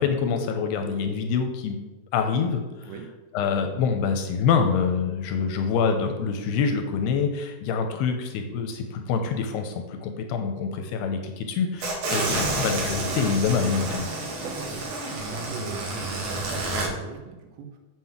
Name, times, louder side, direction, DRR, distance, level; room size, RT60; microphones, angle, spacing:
voice 1, 0.0-1.8 2.1-2.9 3.3-14.1, left 6 dB, 80° left, 6 dB, 2.6 m, -26 dB
sound 1, 11.8-16.9, right 2 dB, 55° right, 2.9 m, -29 dB
voice 2, 14.4-17.8, right 6 dB, 80° right, 4 dB, 3.3 m, -40 dB
7.6 x 6.0 x 7.2 m, 1.1 s
omnidirectional pair, 5.1 m